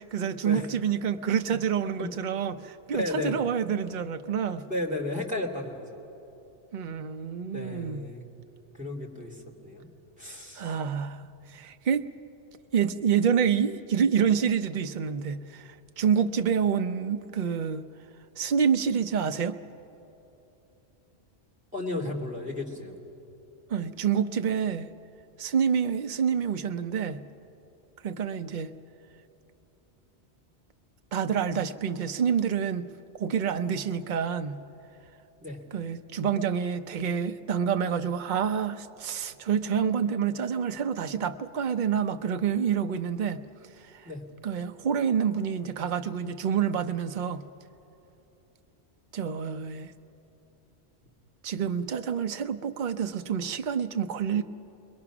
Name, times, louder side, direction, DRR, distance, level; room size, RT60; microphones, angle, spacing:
voice 1, 0.0-4.6 6.7-8.0 10.6-11.2 11.5-12.1 12.7-15.7 16.0-17.8 18.4-19.6 23.7-24.9 25.4-27.2 28.0-28.7 31.1-32.9 33.2-34.6 35.7-43.4 44.0-44.1 44.4-47.4 49.1-49.9 51.4-54.4, right 7 dB, 50° right, 0.7 m, -27 dB
voice 2, 2.9-3.5 4.7-5.8 7.5-8.3 8.8-9.9 10.2-10.8 21.7-22.9 35.4-35.6 44.0-44.2, left 2 dB, 5° right, 2.4 m, -33 dB
30.0 x 21.5 x 6.0 m
omnidirectional pair, 1.1 m